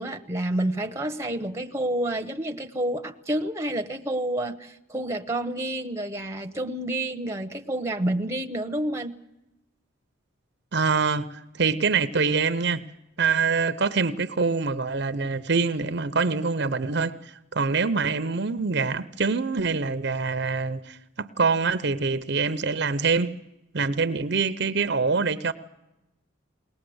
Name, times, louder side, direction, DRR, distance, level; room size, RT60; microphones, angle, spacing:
voice 1, 0.0-9.1, right 1 dB, 15° right, 0.9 m, -29 dB
voice 2, 10.7-12.9 13.2-23.4 23.7-25.5, right 4 dB, 55° right, 0.7 m, -25 dB
21.5 x 19.0 x 7.9 m
head